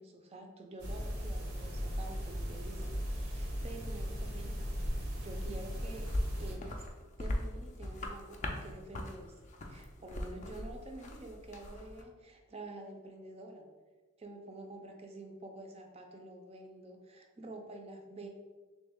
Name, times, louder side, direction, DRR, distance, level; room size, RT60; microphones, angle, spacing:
voice 1, 0.0-6.1 6.4-6.8 7.2-9.4 9.7-13.7 14.2-18.3, right 2 dB, 30° right, 4 dB, 0.4 m, -48 dB
sound 1, 0.8-6.6, equal, 75° right, 0.8 m, -37 dB
sound 2, 6.0-12.0, left 1 dB, 35° left, 0.4 m, -40 dB
3.2 x 3.1 x 3.4 m, 1.4 s
head